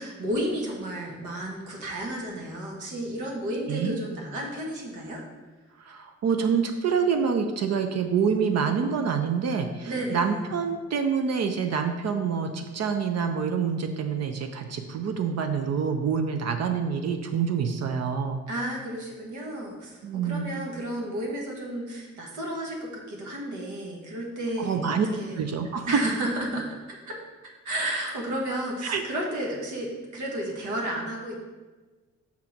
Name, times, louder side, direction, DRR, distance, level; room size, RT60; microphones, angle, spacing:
voice 1, 0.0-5.2 9.8-10.4 18.5-25.4 25.9-27.2 27.6-31.4, right 1 dB, 80° right, -1 dB, 1.5 m, -32 dB
voice 2, 5.8-18.4 20.0-20.5 24.6-25.1 25.3-25.9 28.8-29.0, right 6 dB, 60° right, 6 dB, 0.6 m, -27 dB
5.8 x 3.7 x 5.9 m, 1.3 s
cardioid pair, 90°, 30 cm